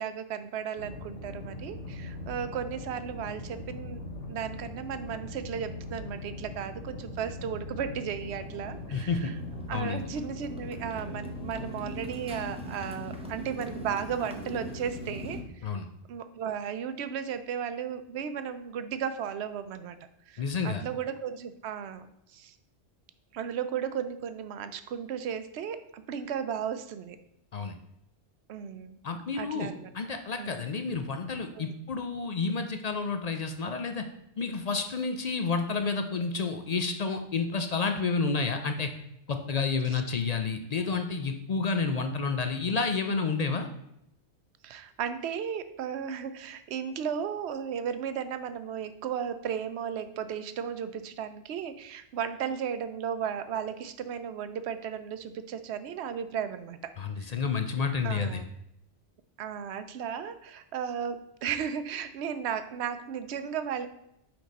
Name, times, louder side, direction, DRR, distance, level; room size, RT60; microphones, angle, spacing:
voice 1, 0.0-4.0 4.3-9.3 9.7-15.7 16.1-20.0 20.3-22.1 22.3-22.5 23.3-27.2 28.5-29.0 29.3-29.9 30.4-30.6 31.5-31.8 39.9-40.0 44.6-56.9 57.2-57.3 58.0-58.5 59.4-63.9, right 8 dB, 70° right, 11 dB, 0.8 m, -35 dB
sound 1, 0.8-15.5, left 2 dB, 90° left, 1.2 m, -41 dB
Motorcycle, 8.2-15.4, equal, 5° right, 0.7 m, -43 dB
voice 2, 8.9-9.3 9.7-10.1 15.6-15.9 20.4-20.8 27.5-27.8 29.0-29.7 29.9-34.0 34.4-38.9 39.3-43.7 57.0-58.4, left 4 dB, 55° left, 6 dB, 0.4 m, -30 dB
6.0 x 4.9 x 4.0 m, 0.78 s
omnidirectional pair, 1.2 m